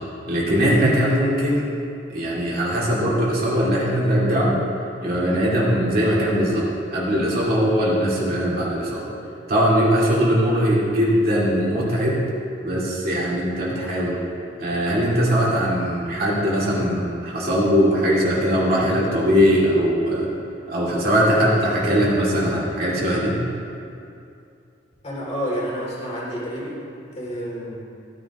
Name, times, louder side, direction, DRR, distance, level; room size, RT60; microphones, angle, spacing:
voice 1, 0.3-1.7 2.1-4.6 5.0-6.6 6.9-9.0 9.5-12.2 12.6-14.1 14.6-20.3 20.7-23.4, equal, 55° right, -6 dB, 2.5 m, -20 dB
voice 2, 25.0-26.8 27.1-27.8, equal, 35° left, -5 dB, 2.8 m, -29 dB
15.5 x 9.8 x 3.0 m, 2.5 s
head